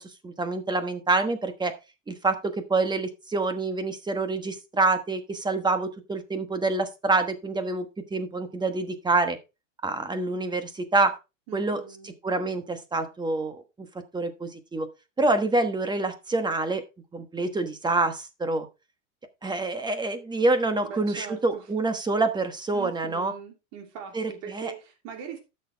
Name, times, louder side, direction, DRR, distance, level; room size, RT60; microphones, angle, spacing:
voice 1, 0.0-1.7 2.1-9.4 9.8-11.2 11.5-13.9 14.1-14.9 15.2-16.8 17.1-18.7 19.4-23.3 24.1-24.7, right 3 dB, 10° right, 1.2 m, -27 dB
voice 2, 11.5-12.1 20.8-21.6 22.7-25.4, right 7 dB, 55° right, 3.0 m, -41 dB
12.0 x 6.7 x 3.4 m
supercardioid pair, 135°, 39 cm